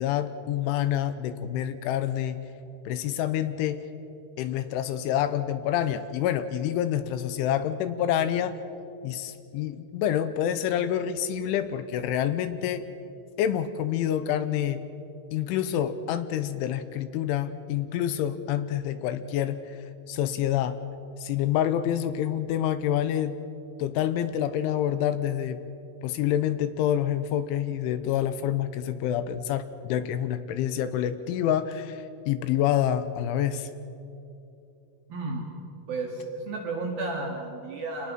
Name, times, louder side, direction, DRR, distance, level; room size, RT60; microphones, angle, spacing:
voice 1, 0.0-2.4 2.9-3.8 4.4-8.6 9.0-12.9 13.4-14.8 15.3-19.6 20.1-20.8 21.2-23.4 23.8-25.6 26.0-33.7, left 10 dB, 80° left, 11 dB, 3.1 m, -27 dB
voice 2, 35.1-35.5 35.9-38.1, right 3 dB, 55° right, 0 dB, 3.1 m, -32 dB
28.0 x 19.5 x 6.0 m, 2.8 s
omnidirectional pair, 5.9 m